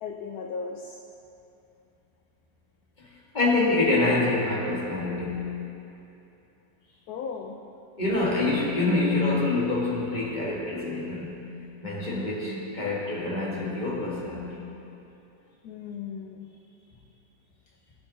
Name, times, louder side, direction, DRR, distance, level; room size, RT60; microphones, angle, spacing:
voice 1, 0.0-1.0 7.1-7.6 15.6-16.5, left 5 dB, 70° left, 3 dB, 1.0 m, -36 dB
voice 2, 3.3-5.6 8.0-11.5 11.8-14.6, left 2 dB, 25° left, -5 dB, 1.8 m, -26 dB
17.0 x 5.6 x 4.2 m, 2.9 s
omnidirectional pair, 2.0 m